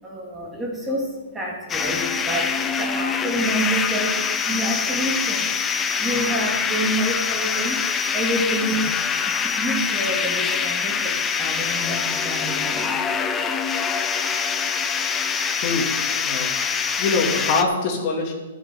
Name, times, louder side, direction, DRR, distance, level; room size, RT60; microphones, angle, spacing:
voice 1, 0.0-5.5 5.9-7.8 8.1-8.9 9.3-12.9, right 1 dB, 10° right, -2 dB, 2.6 m, -28 dB
sound 1, 1.7-17.6, left 6 dB, 15° left, 0.7 m, -24 dB
voice 2, 17.0-18.3, left 3 dB, 40° left, 1 dB, 2.7 m, -23 dB
11.5 x 7.2 x 7.7 m, 1.2 s
hypercardioid pair, 145°, 0 cm